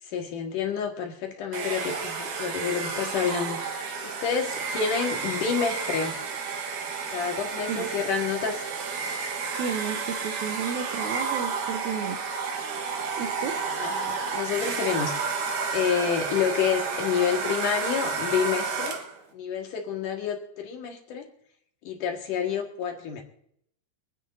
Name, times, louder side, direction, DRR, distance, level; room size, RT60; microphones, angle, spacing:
voice 1, 0.0-6.2 7.1-8.6 13.8-19.0 19.3-21.3 21.8-23.2, left 7 dB, 60° left, 2 dB, 3.0 m, -29 dB
Domestic sounds home sounds, 1.5-19.2, right 5 dB, 65° right, 2.6 m, -31 dB
voice 2, 9.5-12.5 13.2-13.5, right 7 dB, 80° right, 6 dB, 1.7 m, -32 dB
27.0 x 9.7 x 2.6 m, 0.69 s
omnidirectional pair, 4.4 m